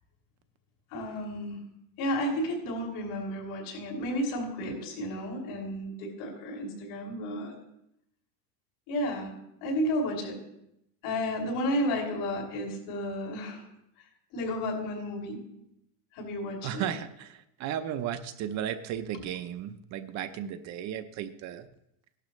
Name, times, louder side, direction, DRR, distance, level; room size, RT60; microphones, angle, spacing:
voice 1, 0.9-1.6 2.0-7.6 8.9-9.3 9.6-10.4 11.0-13.6 14.3-15.4 16.1-16.9, equal, 70° left, -2 dB, 5.9 m, -32 dB
voice 2, 16.6-21.7, right 10 dB, 45° right, 10 dB, 0.7 m, -35 dB
17.0 x 12.0 x 3.1 m, 0.81 s
cardioid pair, 170°, 40 cm